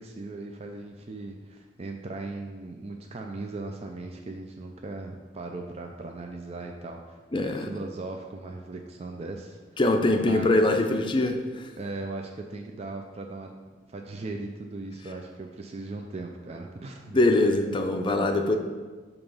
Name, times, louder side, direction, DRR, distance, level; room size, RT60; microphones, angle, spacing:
voice 1, 0.0-9.6 10.2-10.6 11.8-13.6 13.9-17.2, right 2 dB, 35° right, 2 dB, 0.4 m, -38 dB
voice 2, 7.3-7.7 9.8-11.7 17.1-18.6, left 2 dB, 25° left, 4 dB, 0.5 m, -23 dB
8.8 x 3.0 x 5.5 m, 1.4 s
head